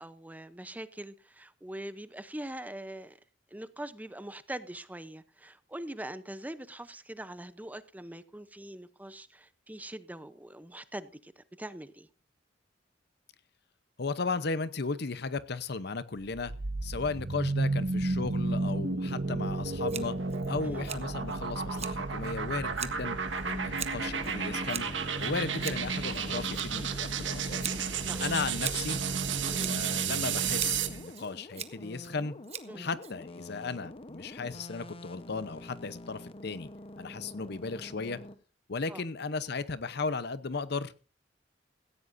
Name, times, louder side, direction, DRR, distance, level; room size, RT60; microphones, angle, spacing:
voice 1, 0.0-3.2 3.5-12.1 20.6-20.9 28.0-28.3 29.5-29.7 32.7-32.9 38.9-39.0, right 1 dB, 10° right, 0.7 m, -43 dB
voice 2, 14.0-16.5 16.8-20.2 20.5-23.2 23.4-24.9 25.2-27.7 28.2-29.0 29.6-32.3 32.8-36.7 37.0-38.2 38.7-40.9, left 4 dB, 60° left, 0.8 m, -35 dB
sound 1, 16.3-31.0, right 4 dB, 85° right, 1.5 m, -32 dB
Scissors, 19.9-33.6, right 9 dB, 35° right, 1.1 m, -44 dB
sound 2, 24.0-38.4, left 1 dB, 30° left, 1.0 m, -47 dB
17.5 x 15.0 x 2.6 m
head